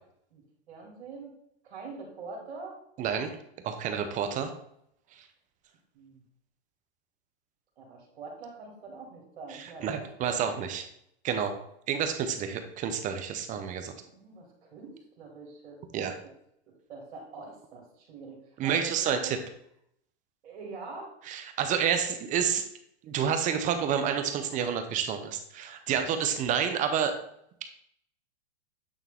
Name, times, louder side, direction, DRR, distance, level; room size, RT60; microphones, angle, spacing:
voice 1, 0.3-1.3 1.6-2.8 5.9-6.2 7.8-10.7 14.1-16.3 16.7-19.4 20.4-21.1 26.0-26.1, right 4 dB, 70° right, -1 dB, 2.5 m, -45 dB
voice 2, 3.0-3.3 3.6-4.5 9.5-10.8 11.2-11.6 11.9-13.9 15.9-16.1 18.6-19.4 21.3-22.6 23.0-27.2, right 8 dB, 25° right, 7 dB, 0.6 m, -29 dB
8.5 x 3.5 x 3.5 m, 0.72 s
hypercardioid pair, 130°, 33 cm